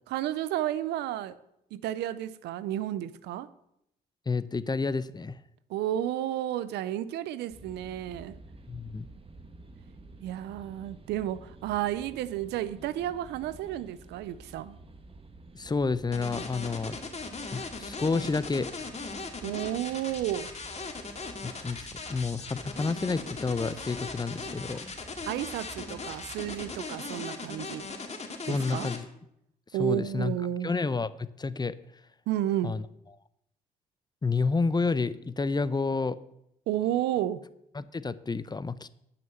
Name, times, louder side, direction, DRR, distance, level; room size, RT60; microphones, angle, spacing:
voice 1, 0.1-1.4 1.7-3.5 5.7-8.4 10.2-14.8 19.4-20.5 25.3-27.9 28.5-28.9 29.7-30.7 32.3-32.7 36.7-37.4, right 12 dB, 90° right, 0.6 m, -32 dB
voice 2, 4.3-5.4 8.7-9.1 15.5-17.0 17.5-18.7 21.4-25.0 28.5-29.1 29.8-30.3 30.6-31.7 32.6-32.8 34.2-36.2 37.7-38.9, left 4 dB, 25° left, 0.7 m, -30 dB
sound 1, 7.5-26.8, right 2 dB, 35° right, 1.6 m, -50 dB
sound 2, 16.1-29.0, left 4 dB, 40° left, 2.3 m, -38 dB
10.5 x 5.9 x 7.9 m
supercardioid pair, 60°, 17 cm